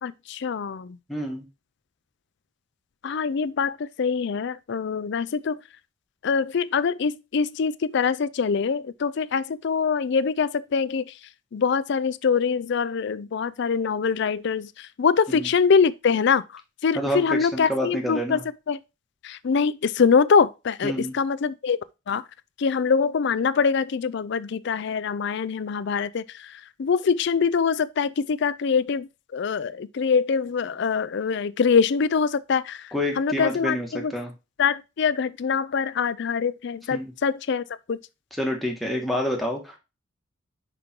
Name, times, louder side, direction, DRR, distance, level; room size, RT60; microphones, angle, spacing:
voice 1, 0.0-1.0 3.0-5.6 6.2-11.1 11.5-16.4 16.8-18.4 18.7-18.8 19.2-21.8 22.1-22.2 22.6-34.1 34.6-38.0, left 5 dB, 60° left, 0.4 m, -24 dB
voice 2, 1.1-1.4 15.3-15.5 16.9-17.2 17.5-18.4 20.8-21.1 32.9-34.3 36.9-37.1 38.4-39.8, equal, ahead, 1.6 m, -28 dB
5.2 x 5.1 x 4.4 m
head